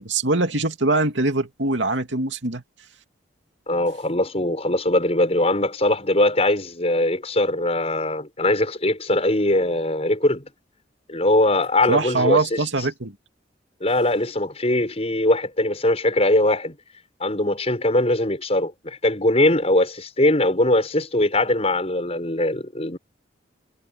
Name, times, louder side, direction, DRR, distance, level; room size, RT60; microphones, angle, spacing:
voice 1, 0.0-2.6 11.9-13.1, right 2 dB, 80° right, 2.5 m, -22 dB
voice 2, 3.7-10.5 11.1-12.6 13.8-16.8 17.2-23.0, left 1 dB, 35° left, 6.3 m, -21 dB
head